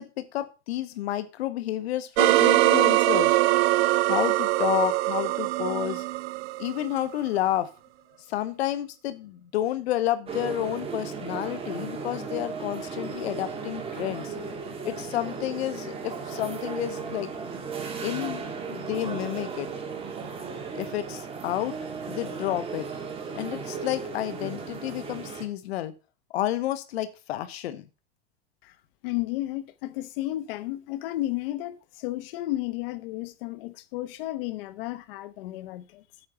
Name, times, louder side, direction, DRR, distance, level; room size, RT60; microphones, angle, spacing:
voice 1, 0.0-3.4 4.1-6.0 6.6-7.7 8.3-14.3 14.8-17.3 18.0-18.4 18.7-19.7 20.7-21.8 22.1-22.9 23.3-25.9 26.3-27.8, left 13 dB, 85° left, 1.1 m, -30 dB
sound 1, 2.2-7.2, right 19 dB, 75° right, 0.5 m, -22 dB
sound 2, 10.3-25.4, right 5 dB, 20° right, 1.9 m, -35 dB
voice 2, 29.0-36.0, left 16 dB, 65° left, 1.1 m, -33 dB
8.6 x 4.9 x 6.8 m
supercardioid pair, 145°, 30 cm